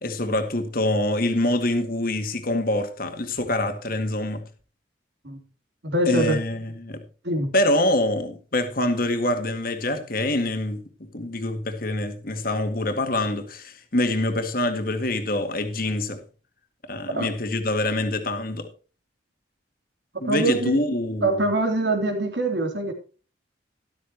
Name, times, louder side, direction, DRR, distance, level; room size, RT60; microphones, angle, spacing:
voice 1, 0.0-4.5 6.1-7.0 7.5-16.2 16.9-18.7 20.2-21.4, left 1 dB, 50° left, 1.9 m, -25 dB
voice 2, 5.8-6.4 7.2-7.5 17.1-17.3 20.1-20.8 21.2-22.9, right 2 dB, 65° right, 3.3 m, -24 dB
13.0 x 12.5 x 3.0 m
head